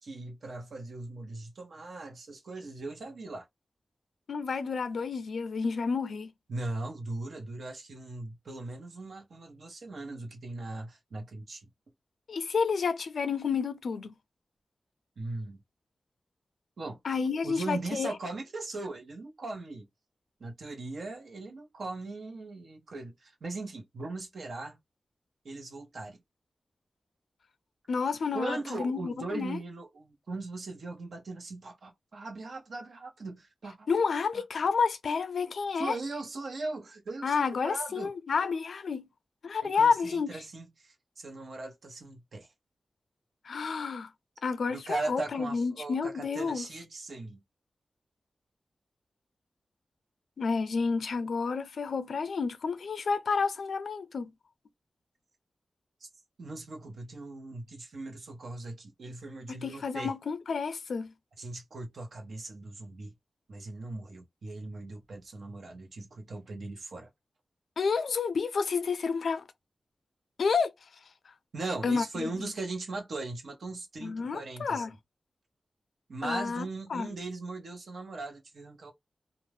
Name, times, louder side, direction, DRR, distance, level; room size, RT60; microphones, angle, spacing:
voice 1, 0.0-3.5 6.5-11.7 15.2-15.6 16.8-17.0 17.4-19.9 20.4-24.8 25.4-26.2 28.3-33.9 34.3-34.4 35.7-38.1 39.6-42.5 44.7-47.4 56.0-56.1 56.4-60.1 61.4-63.1 63.5-67.1 71.5-74.9 76.1-78.9, right 2 dB, 80° right, 0.9 m, -39 dB
voice 2, 4.3-6.3 12.3-14.1 17.0-18.1 27.9-29.6 33.9-36.0 37.2-39.1 39.4-40.4 43.5-44.1 44.4-46.6 50.4-54.3 59.5-61.1 67.8-69.4 70.4-70.7 71.8-72.3 74.0-74.9 76.2-76.6 76.9-77.1, left 5 dB, 90° left, 0.4 m, -30 dB
2.4 x 2.1 x 3.2 m
wide cardioid pair, 100°, 0 cm